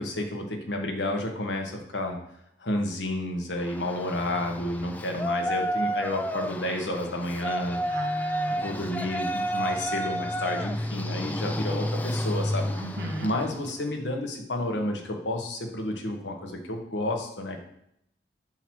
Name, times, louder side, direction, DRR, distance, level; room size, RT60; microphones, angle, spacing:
voice 1, 0.0-2.2 2.6-7.8 8.6-12.7 13.2-17.6, left 1 dB, 90° left, 2 dB, 1.3 m, -31 dB
Yell, 3.6-13.8, equal, 10° left, 0.3 m, -31 dB
voice 2, 7.9-8.6 12.7-13.3, right 2 dB, 65° right, 0 dB, 1.6 m, -35 dB
7.9 x 3.0 x 6.2 m, 0.73 s
head